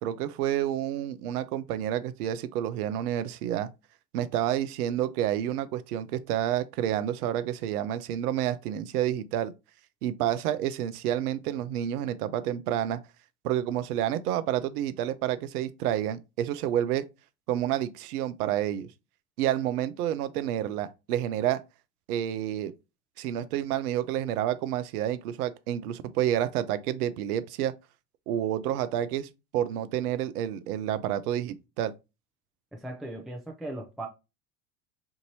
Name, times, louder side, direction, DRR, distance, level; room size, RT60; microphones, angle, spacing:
voice 1, 0.0-3.7 4.1-9.5 10.0-13.0 13.4-17.0 17.5-18.9 19.4-21.6 22.1-22.7 23.2-27.7 28.3-31.9, right 11 dB, 70° right, 0.6 m, -29 dB
voice 2, 32.7-34.1, right 1 dB, ahead, 0.5 m, -38 dB
4.7 x 2.6 x 2.8 m
hypercardioid pair, 85°, 46 cm